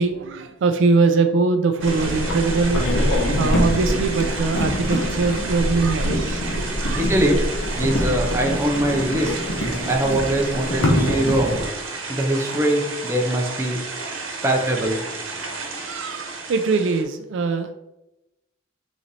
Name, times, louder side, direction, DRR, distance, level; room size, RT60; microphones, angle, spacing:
voice 1, 0.0-2.9 3.4-6.5 6.8-7.1 15.8-17.7, right 4 dB, 65° right, 0.4 m, -22 dB
sound 1, 1.8-11.6, equal, 70° left, 0.8 m, -24 dB
sound 2, 1.8-17.0, right 3 dB, 85° right, 1.0 m, -32 dB
voice 2, 7.0-7.4 7.8-11.6 12.1-13.8 14.4-15.0, right 1 dB, 15° right, 0.6 m, -22 dB
3.9 x 3.1 x 4.0 m
head